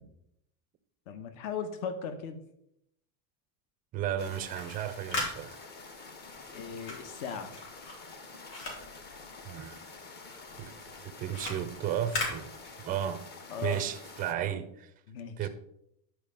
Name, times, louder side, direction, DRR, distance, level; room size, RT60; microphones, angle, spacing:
voice 1, 1.1-2.4 6.5-7.6 13.5-13.8 15.1-15.5, left 6 dB, 65° left, 1.2 m, -37 dB
voice 2, 3.9-5.6 9.4-9.8 10.6-10.7 11.0-12.5 12.8-13.3 13.6-14.9 15.4-15.5, right 10 dB, 20° right, 0.3 m, -34 dB
sound 1, 4.2-14.3, left 3 dB, 20° left, 0.6 m, -48 dB
sound 2, 4.5-9.9 10.2-13.2, left 2 dB, 85° left, 4.1 m, -39 dB
11.0 x 4.7 x 5.2 m
cardioid pair, 160°, 46 cm